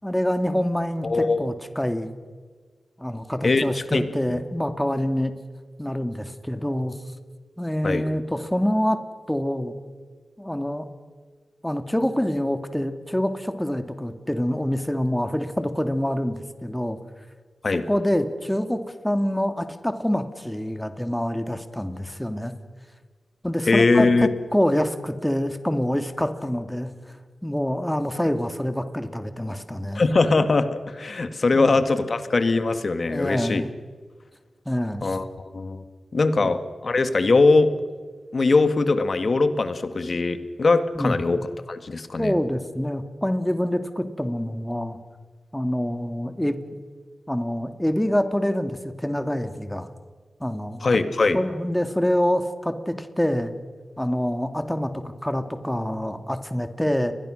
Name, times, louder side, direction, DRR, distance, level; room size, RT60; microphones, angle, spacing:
voice 1, 0.0-2.1 3.0-5.3 5.8-7.0 7.6-9.0 9.3-9.7 10.4-10.8 11.6-17.0 17.9-22.5 23.4-27.2 27.4-30.1 31.5-31.8 33.1-33.7 34.7-35.2 36.4-36.5 41.0-41.2 42.2-45.0 45.5-46.8 47.3-49.9 50.4-50.8 51.3-53.5 54.0-57.1, equal, 10° left, 8 dB, 2.3 m, -26 dB
voice 2, 1.0-1.4 3.4-4.1 7.8-8.0 17.6-17.8 23.7-24.3 29.9-33.6 35.0-35.8 36.1-37.7 38.3-41.4 41.7-42.3 50.8-51.4, left 3 dB, 60° left, 10 dB, 1.9 m, -21 dB
29.5 x 21.5 x 6.5 m, 1.5 s
cardioid pair, 40°, 0 cm